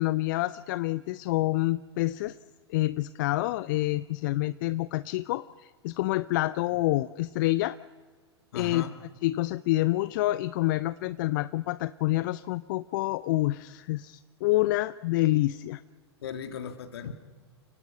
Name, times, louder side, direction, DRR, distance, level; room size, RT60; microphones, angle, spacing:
voice 1, 0.0-2.4 2.7-7.8 8.5-8.9 9.2-15.8, left 17 dB, 45° left, 16 dB, 0.5 m, -27 dB
voice 2, 8.5-8.9 16.2-17.1, left 7 dB, 65° left, 7 dB, 2.2 m, -36 dB
30.0 x 18.5 x 5.6 m, 1.5 s
figure-of-eight pair, 100°, 14 cm